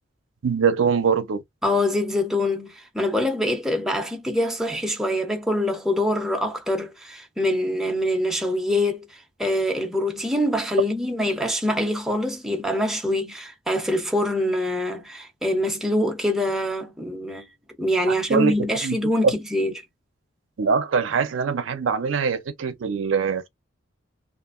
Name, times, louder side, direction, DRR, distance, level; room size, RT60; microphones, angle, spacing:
voice 1, 0.4-1.4 18.1-18.5 18.8-19.0 19.2-19.3 20.6-23.5, right 6 dB, 70° right, 0.5 m, -23 dB
voice 2, 1.6-17.5 17.8-19.7, left 1 dB, ahead, 0.6 m, -24 dB
2.8 x 2.5 x 2.4 m
head